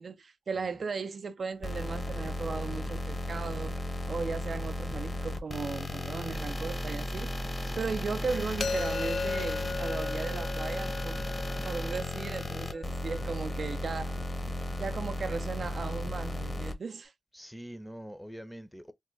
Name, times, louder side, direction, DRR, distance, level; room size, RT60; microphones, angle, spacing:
voice 1, 0.0-3.8 4.1-7.3 7.8-11.2 11.6-14.2 14.8-17.1, right 4 dB, 60° right, 0.4 m, -36 dB
sound 1, 1.6-16.7, left 1 dB, 30° left, 0.8 m, -35 dB
sound 2, 8.6-14.4, left 4 dB, 65° left, 0.4 m, -37 dB
voice 2, 17.3-18.9, equal, 5° left, 0.6 m, -44 dB
3.4 x 2.1 x 3.1 m
cardioid pair, 60°, 0 cm